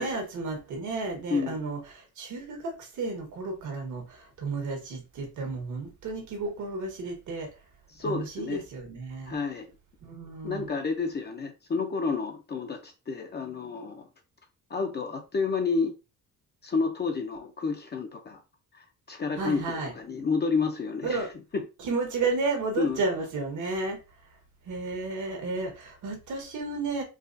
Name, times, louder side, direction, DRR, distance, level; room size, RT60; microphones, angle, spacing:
voice 1, 0.0-7.5 8.0-9.4 10.0-10.7 19.4-19.9 21.0-21.3 21.8-24.0 24.7-27.0, right 3 dB, 70° right, 1.5 m, -32 dB
voice 2, 1.3-1.6 7.9-8.6 9.3-9.7 10.4-14.1 14.7-15.9 16.6-18.4 18.7-21.6 22.8-23.2, left 4 dB, 35° left, 0.6 m, -30 dB
4.8 x 2.4 x 2.6 m
cardioid pair, 125°, 31 cm